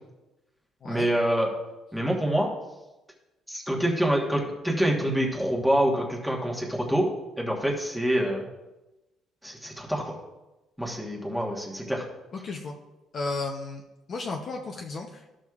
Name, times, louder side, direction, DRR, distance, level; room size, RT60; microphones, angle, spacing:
voice 1, 0.8-1.5 1.9-2.5 3.5-7.1 7.4-8.4 9.4-10.1 10.8-12.0, right 1 dB, ahead, -2 dB, 1.2 m, -26 dB
voice 2, 12.4-12.8 13.1-13.8 14.1-15.2, left 3 dB, 35° left, 1 dB, 0.6 m, -33 dB
13.5 x 6.1 x 2.4 m, 1.0 s
cardioid pair, 165°, 0 cm